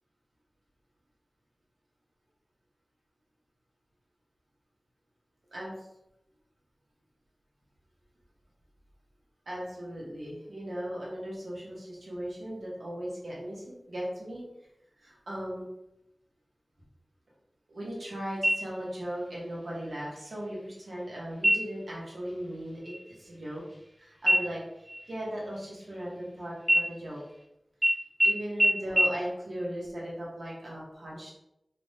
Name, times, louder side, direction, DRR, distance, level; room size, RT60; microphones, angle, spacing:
voice 1, 5.5-5.9 9.5-14.4 15.0-15.6 17.7-23.6 24.0-24.6 25.1-27.2 28.2-31.3, equal, 85° right, -5 dB, 0.9 m, -37 dB
sound 1, 18.4-19.1 19.5-19.6 20.1-20.7 21.3-21.9 22.3-22.5 22.8-23.9 24.3-26.3 26.6-27.4 27.8-27.9 28.2-28.3 28.6-28.7 29.0-29.1, equal, 5° right, 0.6 m, -27 dB
2.5 x 2.1 x 3.1 m, 0.86 s
wide cardioid pair, 80°, 0 cm